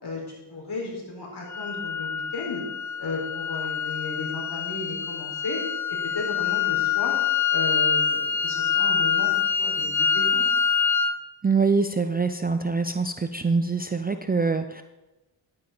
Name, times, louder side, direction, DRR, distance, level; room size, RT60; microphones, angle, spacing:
voice 1, 0.0-2.6 3.0-5.6 5.9-7.2 7.5-9.3 9.6-10.5, left 3 dB, 50° left, -2 dB, 4.3 m, -34 dB
sound 1, 1.5-11.2, left 7 dB, 35° left, 0.8 m, -25 dB
voice 2, 11.4-14.8, right 4 dB, 20° right, 8 dB, 0.5 m, -24 dB
11.0 x 8.8 x 3.9 m, 1.0 s
cardioid pair, 55°, 49 cm